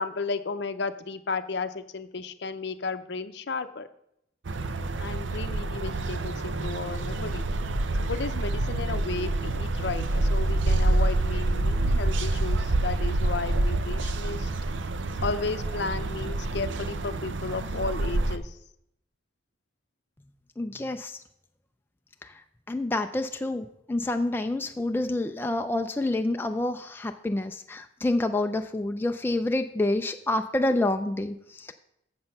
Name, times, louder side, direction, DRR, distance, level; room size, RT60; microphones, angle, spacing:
voice 1, 0.0-3.9 5.0-7.5 8.1-14.5 15.2-18.6, left 4 dB, 60° left, 11 dB, 0.6 m, -33 dB
sound 1, 4.4-18.4, right 2 dB, 70° right, 0.6 m, -27 dB
voice 2, 20.6-21.2 22.7-31.7, left 2 dB, 10° left, 5 dB, 0.3 m, -28 dB
7.7 x 6.9 x 5.4 m, 0.77 s
head